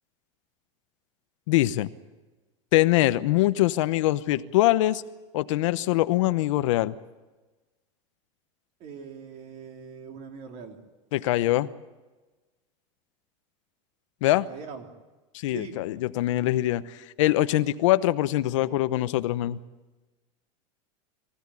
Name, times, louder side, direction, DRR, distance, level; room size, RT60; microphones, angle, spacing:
voice 1, 1.5-1.9 2.7-5.0 5.3-7.0 11.1-11.7 14.2-14.5 15.3-19.6, left 16 dB, 75° left, 13 dB, 0.9 m, -23 dB
voice 2, 8.8-10.8 14.5-14.9 15.5-15.8, right 6 dB, 40° right, 3 dB, 3.4 m, -41 dB
24.0 x 16.0 x 9.8 m, 1.2 s
supercardioid pair, 155°, 16 cm